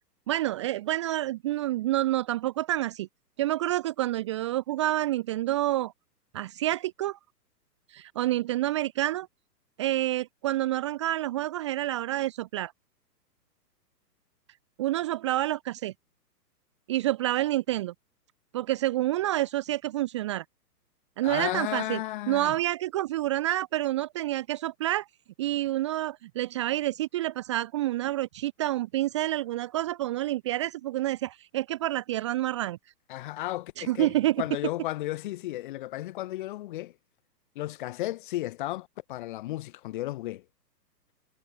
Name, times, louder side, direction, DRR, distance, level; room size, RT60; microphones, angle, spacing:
voice 1, 0.3-3.1 3.4-5.9 6.3-7.2 7.9-9.3 9.8-12.7 14.8-15.9 16.9-17.9 18.5-20.4 21.2-22.0 22.3-25.1 25.4-32.8 33.8-34.4, right 15 dB, 20° right, 0.9 m, -28 dB
voice 2, 21.2-22.6 33.1-36.9 37.5-40.4, left 16 dB, 30° left, 2.6 m, -34 dB
hypercardioid pair, 170°, 49 cm